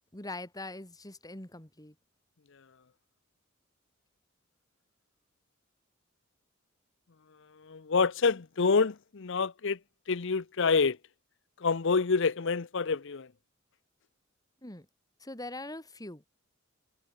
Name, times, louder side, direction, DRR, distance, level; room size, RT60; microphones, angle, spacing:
voice 1, 0.1-1.9 14.6-14.9 15.2-16.2, left 2 dB, 20° left, 3.7 m, -42 dB
voice 2, 7.6-9.8 10.1-11.0 11.6-13.3, left 4 dB, 65° left, 0.7 m, -27 dB
head